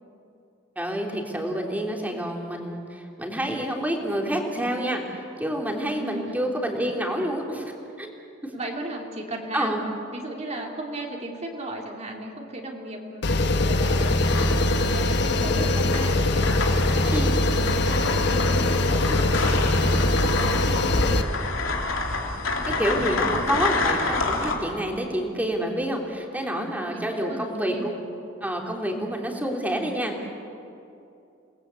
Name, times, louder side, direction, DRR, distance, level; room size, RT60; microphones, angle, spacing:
voice 1, 0.7-8.1 9.5-9.8 17.1-17.3 22.7-27.9 28.4-30.3, equal, 10° right, 1 dB, 3.2 m, -28 dB
voice 2, 6.0-6.3 8.5-9.8 10.1-14.4 14.9-16.6 16.9-21.1 26.4-28.0, right 2 dB, 35° right, 0 dB, 3.0 m, -36 dB
sound 1, 13.2-21.2, left 2 dB, 60° left, 1.3 m, -22 dB
sound 2, 14.0-24.5, left 3 dB, 90° left, 3.3 m, -28 dB
28.5 x 20.0 x 8.4 m, 2.7 s
head